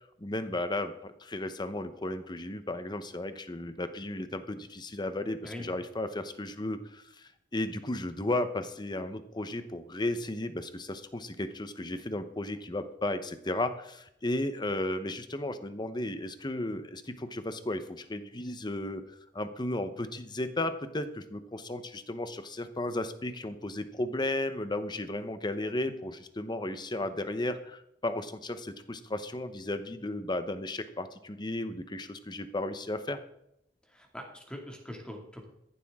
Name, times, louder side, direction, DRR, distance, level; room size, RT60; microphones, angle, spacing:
voice 1, 0.2-19.0 19.3-33.2, left 1 dB, 25° left, 10 dB, 1.0 m, -34 dB
voice 2, 33.9-35.5, left 1 dB, 5° left, 1 dB, 2.4 m, -43 dB
14.5 x 11.5 x 3.7 m, 0.78 s
head